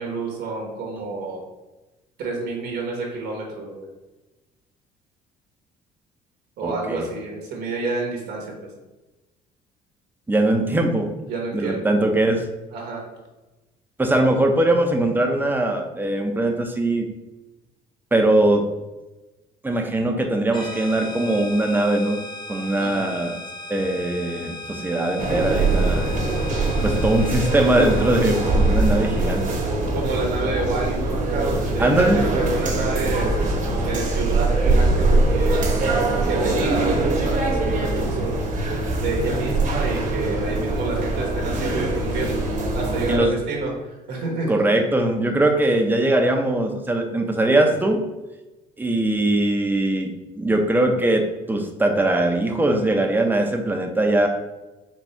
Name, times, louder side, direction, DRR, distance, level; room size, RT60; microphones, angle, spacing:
voice 1, 0.0-1.4 2.2-3.9 6.6-8.5 11.3-11.9 12.7-13.0 22.8-23.1 29.9-35.7 36.3-38.4 39.0-42.4 42.7-44.5, right 3 dB, 75° right, 0 dB, 1.2 m, -28 dB
voice 2, 6.6-7.1 10.3-11.1 11.5-12.4 14.0-17.1 18.1-18.7 19.6-22.2 22.5-23.4 23.7-26.1 26.8-29.4 31.8-32.2 43.1-43.3 44.5-48.0 48.8-54.3, right 1 dB, 10° right, 3 dB, 0.6 m, -21 dB
sound 1, 20.5-29.9, left 1 dB, 25° left, 1.0 m, -38 dB
sound 2, 25.2-43.2, right 2 dB, 50° right, 1.0 m, -22 dB
4.3 x 2.3 x 4.3 m, 1.1 s
cardioid pair, 110°, 17 cm